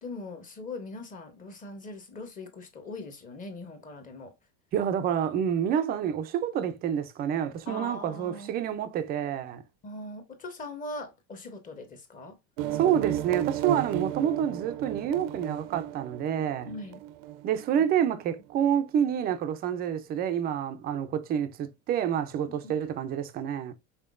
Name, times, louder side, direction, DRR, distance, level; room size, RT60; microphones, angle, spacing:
voice 1, 0.0-4.3 7.7-8.5 9.8-12.4 16.7-17.0 22.5-22.8, left 2 dB, 20° left, 0.8 m, -41 dB
voice 2, 4.7-9.6 12.8-16.7 17.4-23.7, right 9 dB, 25° right, 0.4 m, -28 dB
sound 1, 12.6-18.0, right 13 dB, 70° right, 0.6 m, -34 dB
5.7 x 3.8 x 2.4 m
cardioid pair, 170°, 41 cm